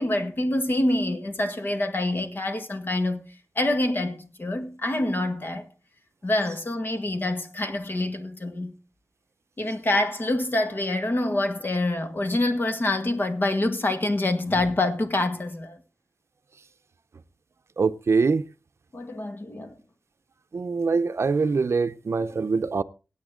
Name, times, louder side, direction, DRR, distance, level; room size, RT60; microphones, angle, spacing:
voice 1, 0.0-5.7 6.2-8.7 9.6-15.8 18.9-19.8, left 1 dB, 45° left, 1.7 m, -26 dB
voice 2, 17.8-18.4 20.5-22.8, right 4 dB, 65° right, 0.6 m, -23 dB
17.0 x 8.8 x 3.7 m
wide cardioid pair, 105°, 5 cm